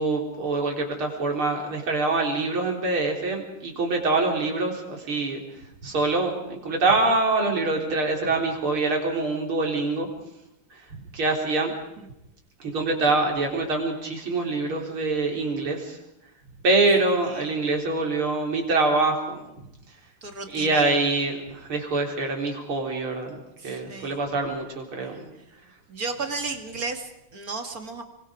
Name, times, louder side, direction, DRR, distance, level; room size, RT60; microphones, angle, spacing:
voice 1, 0.0-5.4 5.8-10.1 11.1-11.7 12.6-16.0 16.6-19.4 20.5-23.3 23.6-25.3, right 3 dB, 85° right, 1 dB, 4.7 m, -25 dB
voice 2, 20.2-21.0 23.6-24.2 25.0-25.2 25.9-28.0, right 3 dB, 45° right, 6 dB, 2.6 m, -34 dB
26.5 x 24.0 x 5.0 m, 0.86 s
omnidirectional pair, 2.3 m